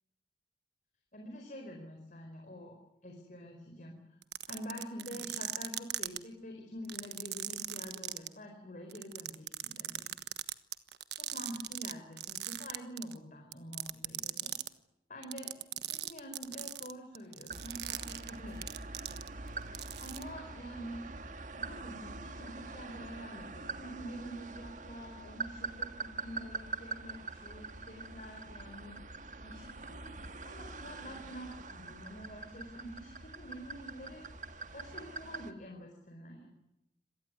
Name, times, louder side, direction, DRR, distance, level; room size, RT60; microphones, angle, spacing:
voice 1, 1.1-2.8 3.0-4.0 4.5-10.1 11.2-14.5 15.1-15.6 15.9-19.2 20.0-21.1 21.5-29.0 29.4-30.1 30.4-34.2 34.7-36.5, equal, 45° left, 2 dB, 4.7 m, -47 dB
sound 1, 4.2-6.2 6.8-8.3 8.9-11.9 12.2-13.2 13.5-14.7 15.2-19.5 19.7-20.2, right 13 dB, 70° right, 1.3 m, -38 dB
sound 2, 17.5-35.5, right 3 dB, 45° right, 1.7 m, -44 dB
26.0 x 18.5 x 9.7 m, 0.84 s
head